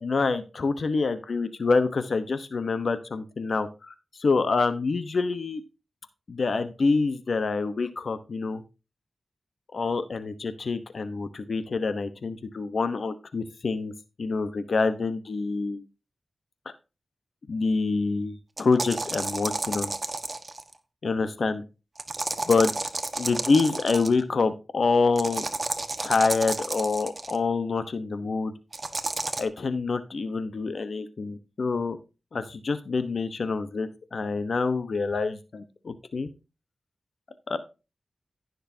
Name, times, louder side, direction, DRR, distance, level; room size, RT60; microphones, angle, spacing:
voice 1, 0.0-5.6 6.3-8.6 9.7-13.9 14.2-15.8 17.5-19.9 21.0-21.6 22.4-22.7 23.2-25.5 26.0-28.5 29.4-32.0 32.3-36.3 37.5-37.6, left 4 dB, 70° left, 11 dB, 1.0 m, -26 dB
sound 1, 18.6-20.7 22.0-24.2 25.2-27.4 28.7-29.4, right 2 dB, 45° right, 1.3 m, -31 dB
15.0 x 6.6 x 2.8 m, 0.29 s
cardioid pair, 50°, 0 cm